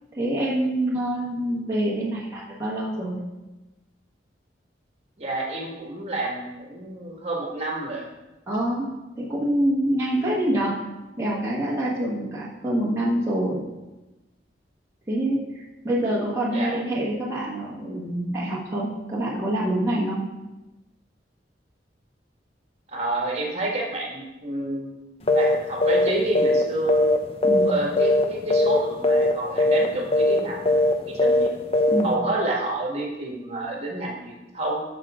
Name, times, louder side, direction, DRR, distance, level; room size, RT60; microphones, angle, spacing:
voice 1, 0.2-3.2 8.5-8.9 9.1-10.7 11.2-13.6 15.1-20.2 27.4-27.7 31.9-32.1, right 1 dB, 15° right, -7 dB, 1.5 m, -26 dB
voice 2, 5.2-8.1 16.5-16.8 22.9-25.0 25.3-27.0 27.6-31.5 32.0-34.8, right 2 dB, 35° right, -2 dB, 1.8 m, -29 dB
sound 1, 25.3-25.6 25.8-26.1 26.3-27.7 28.0-28.2 28.5-28.8 29.0-29.3 29.6-29.9 30.1-30.4 30.7-30.9 31.2-31.5 31.7-32.0, left 1 dB, 35° left, 0.7 m, -19 dB
12.0 x 6.4 x 3.7 m, 1.1 s
head